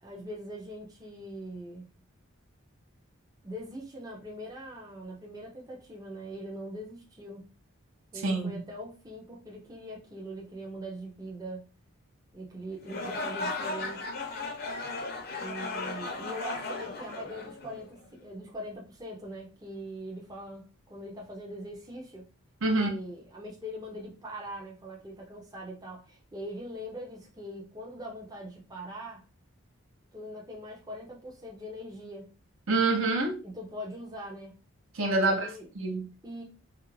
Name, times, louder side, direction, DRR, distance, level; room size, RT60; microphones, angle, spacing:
voice 1, 0.0-1.9 3.4-7.5 8.1-11.6 12.3-14.1 15.4-22.3 22.7-29.3 30.1-32.4 33.4-34.6 35.1-35.7 36.2-36.4, equal, 15° right, 0.5 m, -42 dB
sound 1, 12.8-18.0, left 3 dB, 45° left, 0.5 m, -36 dB
voice 2, 32.7-33.4 34.9-35.5 35.8-36.1, right 2 dB, 70° right, 0.6 m, -26 dB
2.4 x 2.0 x 3.0 m
head